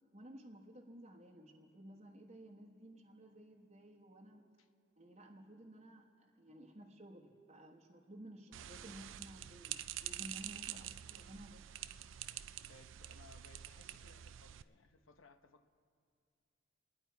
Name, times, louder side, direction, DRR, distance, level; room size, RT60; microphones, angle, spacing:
voice 1, 0.1-4.4 5.0-11.7, right 1 dB, 35° right, -1 dB, 1.1 m, -55 dB
sound 1, 8.5-14.6, right 12 dB, 75° right, 0.4 m, -47 dB
voice 2, 12.6-15.7, left 3 dB, 85° left, 8 dB, 0.9 m, -63 dB
29.0 x 10.0 x 4.6 m, 2.3 s
head